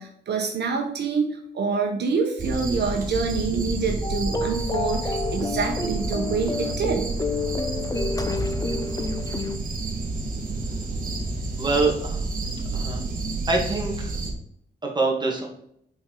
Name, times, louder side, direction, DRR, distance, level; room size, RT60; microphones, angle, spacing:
voice 1, 0.0-7.1, right 4 dB, 65° right, 2 dB, 1.0 m, -26 dB
sound 1, 2.4-14.3, right 3 dB, 50° right, 1.7 m, -30 dB
sound 2, 4.0-9.6, left 3 dB, 20° left, 0.6 m, -29 dB
voice 2, 11.6-12.2 12.7-13.0 13.5-13.9 14.8-15.5, right 3 dB, 25° right, 0 dB, 1.7 m, -24 dB
7.7 x 4.4 x 3.9 m, 0.71 s
wide cardioid pair, 125°, 18 cm